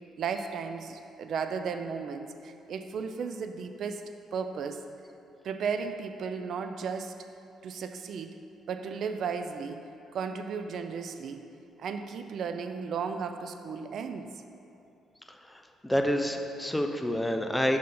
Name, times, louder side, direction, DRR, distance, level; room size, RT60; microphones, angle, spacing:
voice 1, 0.2-4.8 5.4-7.2 7.6-8.4 8.7-11.4 11.8-14.3, right 6 dB, 65° right, 8 dB, 0.4 m, -35 dB
voice 2, 15.5-17.8, equal, 10° left, 4 dB, 0.5 m, -28 dB
6.3 x 4.2 x 5.4 m, 2.9 s
cardioid pair, 90°, 0 cm